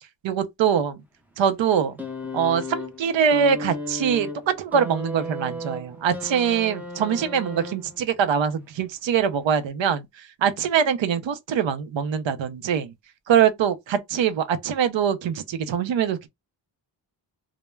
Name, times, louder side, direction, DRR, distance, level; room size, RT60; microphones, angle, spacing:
voice 1, 0.2-1.0 1.4-1.9 2.3-10.1 10.4-12.9 13.3-16.3, right 7 dB, 85° right, 0.5 m, -23 dB
sound 1, 2.0-8.2 9.2-9.3, left 1 dB, 5° right, 0.4 m, -34 dB
2.2 x 2.0 x 3.1 m
wide cardioid pair, 150°, 44 cm